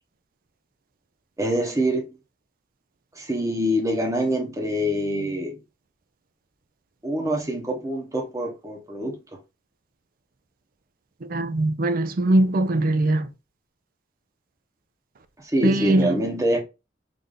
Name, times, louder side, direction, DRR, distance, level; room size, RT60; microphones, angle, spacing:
voice 1, 1.4-2.1 3.1-5.6 7.0-9.2 15.4-16.6, equal, 15° right, 0.9 m, -25 dB
voice 2, 11.3-13.3 15.6-16.2, right 1 dB, 50° right, 0.4 m, -21 dB
3.3 x 2.6 x 3.7 m
head